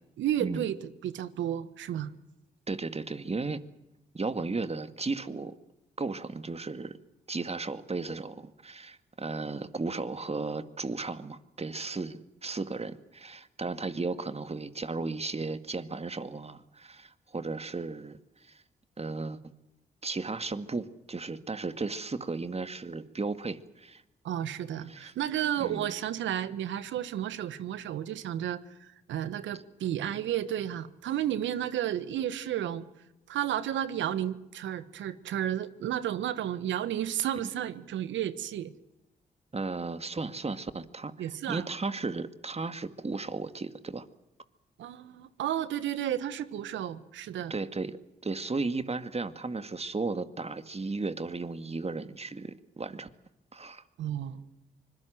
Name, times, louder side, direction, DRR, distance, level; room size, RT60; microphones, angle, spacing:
voice 1, 0.2-0.8 1.0-2.1 24.2-32.9 33.3-38.7 41.2-41.7 44.8-47.5 54.0-54.4, right 11 dB, 80° right, 14 dB, 1.4 m, -32 dB
voice 2, 2.7-3.6 4.1-5.5 6.0-7.0 7.3-18.6 19.0-19.4 20.0-24.0 24.9-25.1 25.6-25.8 39.5-44.1 47.5-53.1 53.5-53.8, right 3 dB, 30° right, 11 dB, 2.1 m, -35 dB
25.0 x 22.0 x 7.9 m, 0.91 s
hypercardioid pair, 45°, 19 cm